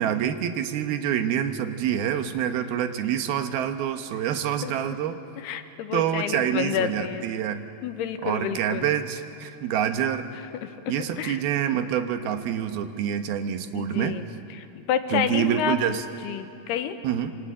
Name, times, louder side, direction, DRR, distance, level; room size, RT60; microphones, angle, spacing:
voice 1, 0.0-5.2 5.9-7.6 8.2-10.3 10.9-14.2 15.1-16.0 17.0-17.4, right 9 dB, 75° right, 8 dB, 2.9 m, -26 dB
voice 2, 4.6-5.0 5.4-7.3 7.8-8.9 10.6-11.4 13.7-14.3 14.5-15.8 16.2-17.0, left 9 dB, 80° left, 9 dB, 3.0 m, -29 dB
27.0 x 25.0 x 8.6 m, 2.6 s
omnidirectional pair, 4.7 m